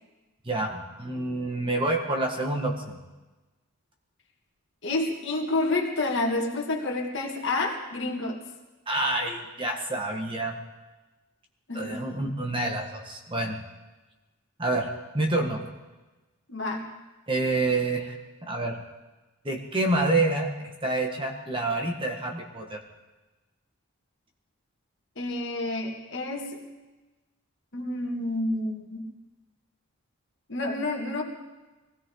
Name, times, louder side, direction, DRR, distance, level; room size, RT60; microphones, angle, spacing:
voice 1, 0.4-3.0 8.9-10.6 11.7-13.6 14.6-15.6 17.3-18.1 18.4-18.8 19.4-22.8, right 2 dB, 25° right, 2 dB, 1.6 m, -28 dB
voice 2, 4.8-8.4 11.7-12.0 16.5-16.9 25.2-26.6 27.7-29.1 30.5-31.2, left 2 dB, 55° left, 0 dB, 2.3 m, -29 dB
22.5 x 16.5 x 3.9 m, 1.2 s
head